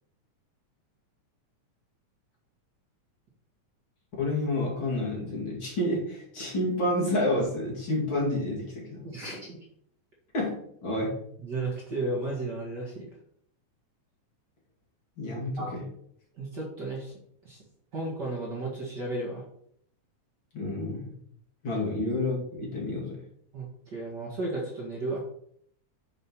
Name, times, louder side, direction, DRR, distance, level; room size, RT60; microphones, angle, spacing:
voice 1, 4.2-9.1 10.3-11.2 15.2-15.8 20.5-21.1 21.6-23.2, left 1 dB, 40° left, -4 dB, 2.9 m, -29 dB
voice 2, 9.0-9.7 11.4-13.2 15.6-15.7 16.3-17.1 17.4-17.6 17.9-19.4 21.6-21.8 23.5-25.2, right 2 dB, 40° right, -3 dB, 2.1 m, -34 dB
9.7 x 5.2 x 4.6 m, 0.67 s
omnidirectional pair, 3.4 m